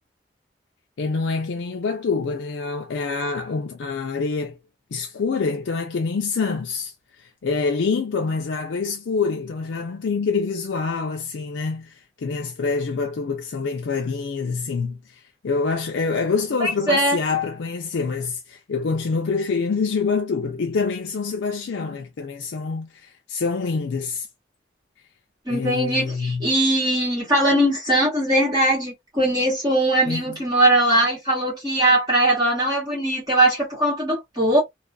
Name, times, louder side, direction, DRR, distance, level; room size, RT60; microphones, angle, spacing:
voice 1, 1.0-4.6 4.9-6.9 7.2-24.3 25.5-26.5 30.0-30.4, left 4 dB, 75° left, 0.4 m, -26 dB
voice 2, 16.6-17.2 25.5-34.6, right 1 dB, 20° right, 1.1 m, -20 dB
2.4 x 2.3 x 2.2 m
head